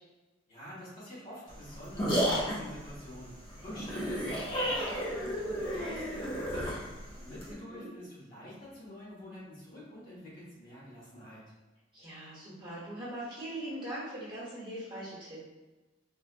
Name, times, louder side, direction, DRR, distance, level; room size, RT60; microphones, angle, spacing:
voice 1, 0.5-6.8 7.2-11.4, equal, 50° left, -8 dB, 1.4 m, -47 dB
sound 1, 1.5-7.5, equal, 25° left, 0.6 m, -33 dB
voice 2, 7.5-7.9 11.9-15.4, right 1 dB, 25° right, -8 dB, 1.2 m, -41 dB
3.8 x 2.4 x 2.4 m, 1.1 s
head